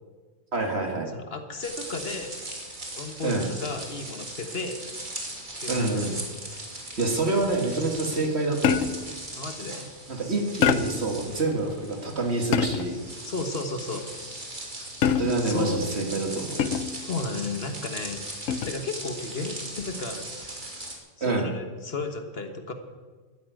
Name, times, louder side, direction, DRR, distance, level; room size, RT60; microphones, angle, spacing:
voice 1, 0.5-1.1 3.2-3.5 5.7-6.1 7.0-8.9 10.1-13.0 15.2-16.6 21.2-21.5, right 2 dB, 55° right, 3 dB, 2.3 m, -27 dB
voice 2, 1.1-2.4 3.0-4.8 5.6-6.0 9.3-9.9 13.2-14.1 15.3-15.8 17.0-20.6 21.2-22.7, left 3 dB, 50° left, 6 dB, 1.6 m, -34 dB
sound 1, 1.6-21.0, right 1 dB, 40° right, 2.7 m, -39 dB
sound 2, 8.6-9.2 10.6-11.1 12.5-13.0 15.0-15.6 16.6-17.1 18.5-18.9, left 7 dB, 90° left, 1.1 m, -25 dB
13.0 x 10.0 x 9.4 m, 1.4 s
omnidirectional pair, 1.3 m